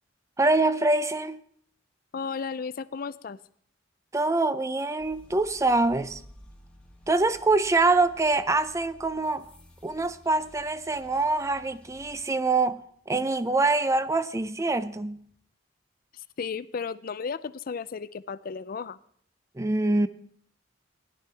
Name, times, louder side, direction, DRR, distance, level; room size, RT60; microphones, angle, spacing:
voice 1, 0.4-1.4 4.1-6.2 7.1-9.5 9.8-15.3 19.6-20.1, right 3 dB, 15° right, 0.5 m, -25 dB
voice 2, 2.1-3.4 16.1-19.0, left 5 dB, 50° left, 0.4 m, -34 dB
sound 1, 5.0-12.3, equal, 5° left, 1.7 m, -53 dB
17.0 x 11.5 x 3.4 m
head